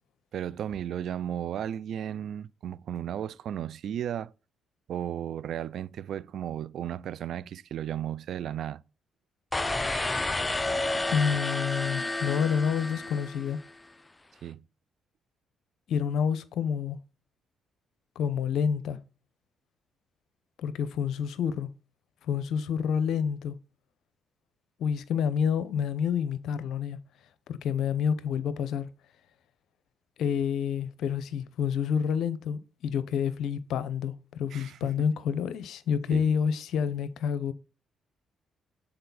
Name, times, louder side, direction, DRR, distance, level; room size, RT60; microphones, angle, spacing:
voice 1, 0.3-4.3 4.9-8.8 14.4-14.6 34.5-34.8 36.1-36.2, right 10 dB, 70° right, 0.3 m, -34 dB
sound 1, 9.5-13.7, left 2 dB, 20° left, 0.6 m, -30 dB
voice 2, 11.1-13.6 15.9-17.0 18.2-19.0 20.6-21.7 22.3-23.6 24.8-27.0 27.5-28.9 30.2-37.5, left 7 dB, 75° left, 0.7 m, -28 dB
6.8 x 4.3 x 4.0 m
supercardioid pair, 60°, 0 cm